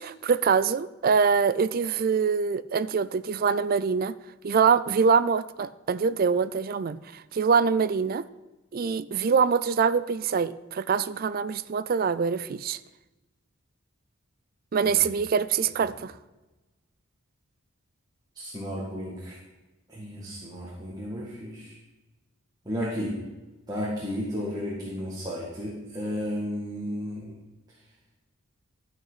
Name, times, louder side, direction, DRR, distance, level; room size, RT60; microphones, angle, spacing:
voice 1, 0.0-4.1 4.4-8.3 8.7-12.8 14.7-16.1, right 6 dB, 45° right, 16 dB, 0.4 m, -24 dB
voice 2, 18.3-19.4 19.9-21.7 22.7-23.1 23.7-27.3, equal, 20° right, -6 dB, 2.0 m, -33 dB
13.0 x 5.9 x 5.7 m, 1.1 s
head